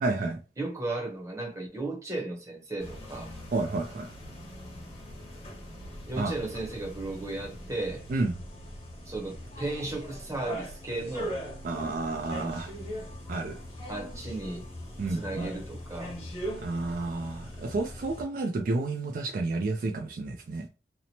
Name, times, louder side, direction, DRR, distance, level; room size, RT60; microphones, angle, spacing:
voice 1, 0.0-0.4 3.5-4.1 6.2-6.3 8.1-8.3 11.6-12.7 13.3-13.5 15.0-15.5 16.6-20.7, right 3 dB, 50° right, 0.3 m, -30 dB
voice 2, 0.6-3.3 6.1-8.0 9.1-11.4 13.9-14.6 15.1-16.2, right 2 dB, 15° right, 0.7 m, -35 dB
sound 1, 2.8-18.2, equal, 35° left, 1.2 m, -41 dB
2.9 x 2.0 x 2.8 m
head